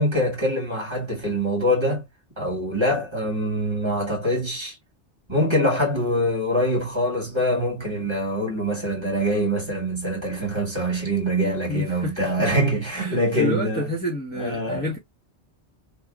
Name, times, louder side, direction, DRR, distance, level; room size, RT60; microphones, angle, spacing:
voice 1, 0.0-2.1 2.4-4.8 5.3-13.9 14.4-14.9, equal, 25° right, 1.7 m, -24 dB
voice 2, 11.7-12.3 12.9-15.0, equal, 10° left, 1.0 m, -29 dB
3.5 x 2.3 x 2.4 m
omnidirectional pair, 1.1 m